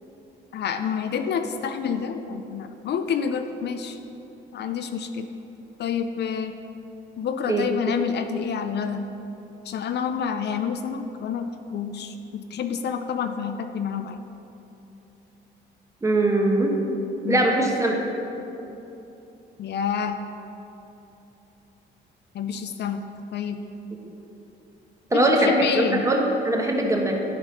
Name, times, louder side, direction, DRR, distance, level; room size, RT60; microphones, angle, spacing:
voice 1, 0.5-4.0 4.5-5.3 5.8-6.5 7.2-9.1 9.6-14.2 17.2-17.5 19.6-20.2 22.3-23.1 23.3-23.6 25.1-26.1, left 7 dB, 60° left, 8 dB, 0.5 m, -28 dB
voice 2, 16.0-16.7 17.3-18.0 25.1-27.2, right 1 dB, 15° right, 1 dB, 1.1 m, -21 dB
10.5 x 4.1 x 5.3 m, 3.0 s
cardioid pair, 90°, 20 cm